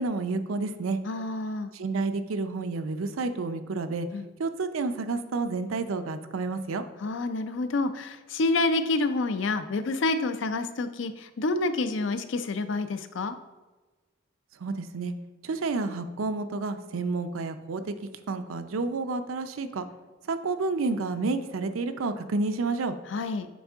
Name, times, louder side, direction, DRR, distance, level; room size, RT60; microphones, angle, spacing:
voice 1, 0.0-1.0 1.7-4.1 4.4-6.8 14.6-15.1 15.4-17.9 18.3-19.8 20.3-22.9, right 3 dB, 90° right, 9 dB, 0.5 m, -30 dB
voice 2, 1.1-1.7 4.1-4.3 7.0-13.4 23.1-23.5, left 3 dB, 65° left, 10 dB, 0.4 m, -28 dB
9.2 x 3.6 x 3.5 m, 1.2 s
head